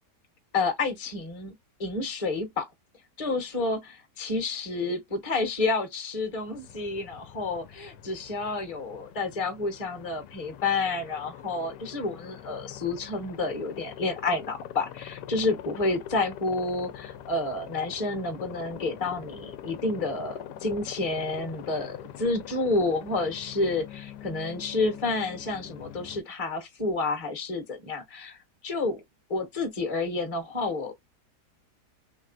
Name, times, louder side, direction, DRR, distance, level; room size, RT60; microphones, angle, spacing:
voice 1, 0.5-1.5 1.8-2.7 3.2-28.4 28.6-29.0 29.3-30.9, left 3 dB, 25° left, 0.8 m, -29 dB
Aircraft, 6.3-26.2, left 11 dB, 80° left, 1.2 m, -44 dB
3.5 x 3.1 x 2.4 m
omnidirectional pair, 1.8 m